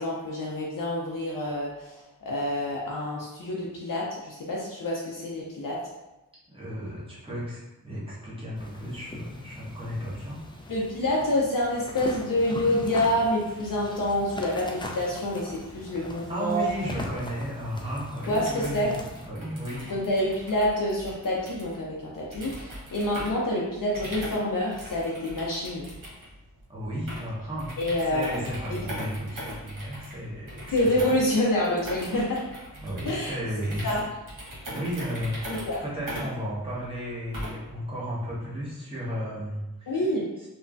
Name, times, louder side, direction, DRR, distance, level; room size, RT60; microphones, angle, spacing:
voice 1, 0.0-5.8 10.7-16.7 18.3-19.0 19.8-25.8 27.8-28.4 28.7-28.8 30.7-32.4 33.0-33.4 33.8-34.0 35.5-35.8 39.9-40.3, left 1 dB, 65° left, -3 dB, 0.6 m, -27 dB
voice 2, 6.5-10.4 16.3-19.0 19.2-19.9 26.7-27.7 28.1-31.2 32.8-34.0 34.7-40.0, equal, 15° right, -8 dB, 1.1 m, -34 dB
sound 1, 8.5-19.3, left 1 dB, 15° left, 0.4 m, -41 dB
sound 2, 18.2-37.7, equal, 60° right, 1.2 m, -40 dB
3.1 x 2.2 x 2.5 m, 0.98 s
cardioid pair, 40°, 36 cm